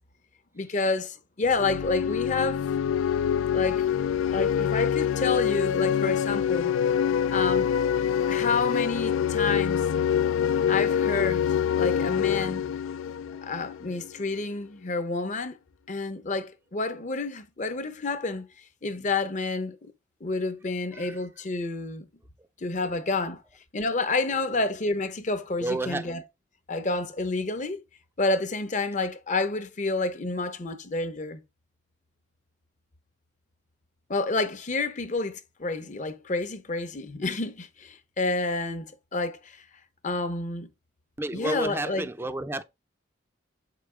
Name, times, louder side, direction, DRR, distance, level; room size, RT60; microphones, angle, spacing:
voice 1, 0.5-2.7 3.5-3.8 4.3-6.7 7.3-7.7 8.3-9.8 10.7-11.5 11.8-12.6 13.4-15.6 15.9-18.5 18.8-19.9 20.2-22.0 22.6-23.4 23.7-26.2 26.7-27.8 28.2-31.4 34.1-39.6 40.0-40.7 41.3-42.1, left 3 dB, 40° left, 0.7 m, -29 dB
sound 1, 1.4-14.1, left 8 dB, 85° left, 0.3 m, -25 dB
voice 2, 25.6-26.1 41.2-42.6, right 1 dB, 10° right, 0.4 m, -31 dB
7.4 x 4.8 x 3.2 m
head